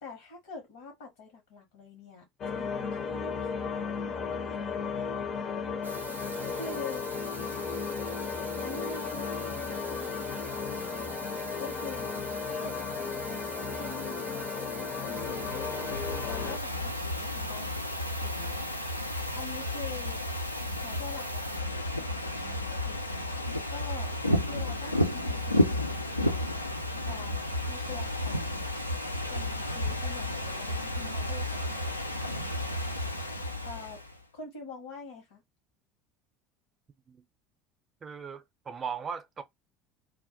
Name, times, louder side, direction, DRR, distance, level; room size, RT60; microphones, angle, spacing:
voice 1, 0.0-5.6 6.5-7.1 8.6-9.5 9.8-11.1 11.6-13.2 13.8-15.7 16.2-17.8 18.2-18.8 19.3-20.2 20.8-23.3 23.7-26.0 27.0-28.7 29.2-32.3 33.6-34.0 34.3-35.4, left 4 dB, 65° left, 0.9 m, -45 dB
sound 1, 2.4-16.6, left 5 dB, 40° left, 0.5 m, -35 dB
sound 2, 5.8-21.6, right 3 dB, 85° right, 0.4 m, -43 dB
Ocean / Fireworks, 14.9-34.2, left 1 dB, 90° left, 0.3 m, -32 dB
voice 2, 38.0-39.4, right 6 dB, 30° right, 0.5 m, -38 dB
2.2 x 2.1 x 2.8 m
figure-of-eight pair, 70°, 0 cm